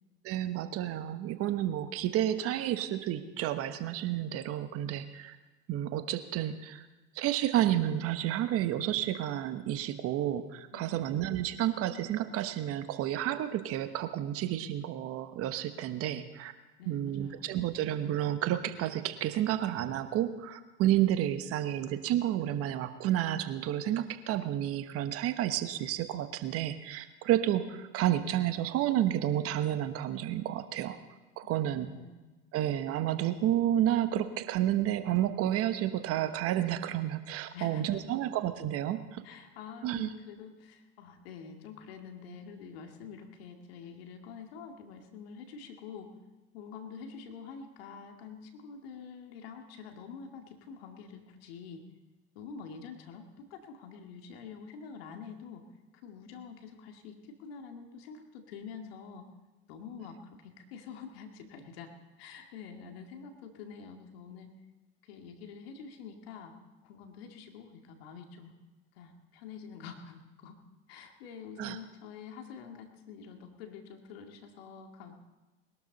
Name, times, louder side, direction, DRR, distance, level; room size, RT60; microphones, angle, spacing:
voice 1, 0.2-5.4 5.7-6.8 7.1-16.5 16.9-31.0 31.4-31.9 32.5-39.2 39.8-40.1 71.6-71.8, right 12 dB, 50° right, 10 dB, 1.2 m, -30 dB
voice 2, 10.7-11.2 16.8-17.6 31.4-32.3 37.5-38.2 39.2-46.1 46.5-51.8 52.4-55.6 56.0-59.2 59.7-61.9 62.2-64.5 65.0-66.5 66.8-68.5 69.0-70.6 70.9-75.1, left 6 dB, 70° left, 4 dB, 2.2 m, -47 dB
21.0 x 12.5 x 4.1 m, 1.2 s
hypercardioid pair, 90°, 31 cm